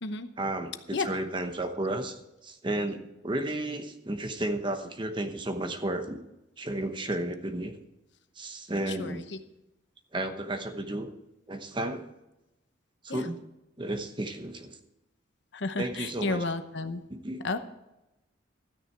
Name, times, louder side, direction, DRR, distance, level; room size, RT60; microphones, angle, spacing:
voice 1, 0.4-6.2 6.6-7.8 8.4-9.3 10.1-11.1 11.5-12.1 13.0-13.4 13.8-14.8 15.8-16.4 17.1-17.4, right 1 dB, 25° right, 7 dB, 1.0 m, -33 dB
voice 2, 8.9-9.2 13.1-13.3 15.5-17.0 17.4-17.6, left 3 dB, 65° left, 9 dB, 0.9 m, -32 dB
13.5 x 9.7 x 4.6 m, 0.92 s
head